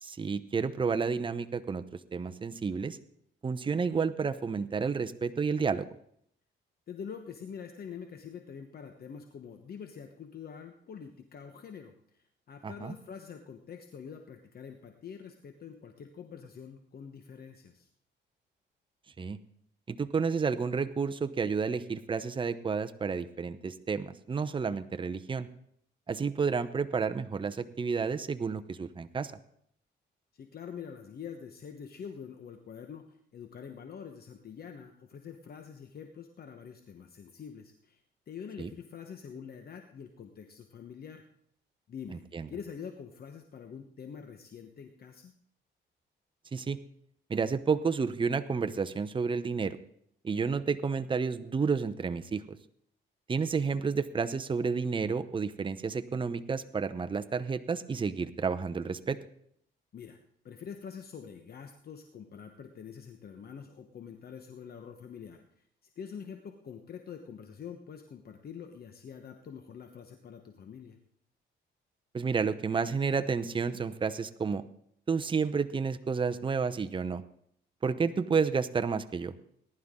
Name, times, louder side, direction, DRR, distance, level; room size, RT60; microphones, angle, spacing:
voice 1, 0.0-1.8 2.1-3.0 3.4-5.9 12.6-12.9 19.2-19.4 19.9-25.5 26.1-29.3 38.6-38.7 42.3-42.5 46.5-46.8 47.3-49.8 50.2-52.6 53.3-59.2 72.1-74.6 75.1-77.2 77.8-79.3, right 5 dB, 25° right, 10 dB, 0.7 m, -30 dB
voice 2, 6.9-17.9 30.3-41.2 41.9-45.3 59.9-60.2 60.4-65.6 66.0-71.0, left 7 dB, 50° left, 6 dB, 1.1 m, -45 dB
19.0 x 11.0 x 3.7 m, 0.69 s
cardioid pair, 90°, 20 cm